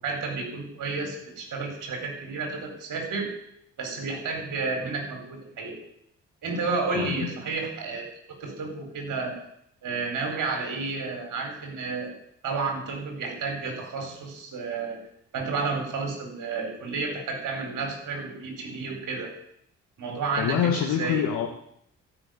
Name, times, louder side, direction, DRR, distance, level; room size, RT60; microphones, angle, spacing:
voice 1, 0.0-3.3 3.8-5.8 6.4-8.0 8.4-9.4 9.8-12.1 12.4-15.0 15.3-19.3 20.0-21.2, right 4 dB, 65° right, 3 dB, 4.3 m, -31 dB
voice 2, 6.9-7.3 20.4-21.5, left 9 dB, 75° left, 1 dB, 1.5 m, -26 dB
13.0 x 6.4 x 9.1 m, 0.72 s
hypercardioid pair, 50°, 33 cm